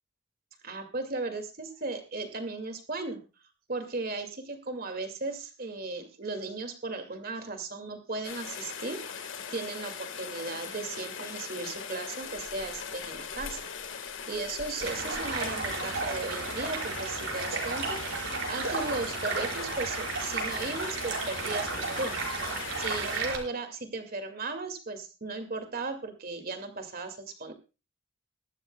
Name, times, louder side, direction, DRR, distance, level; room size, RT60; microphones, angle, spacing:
voice 1, 0.6-3.2 3.7-9.0 9.5-27.5, right 3 dB, 50° right, 6 dB, 2.3 m, -36 dB
Rain, 8.2-23.2, left 6 dB, 70° left, 1.7 m, -40 dB
Stream, 14.8-23.4, right 4 dB, 80° right, 5.0 m, -33 dB
23.0 x 12.0 x 2.3 m, 0.30 s
head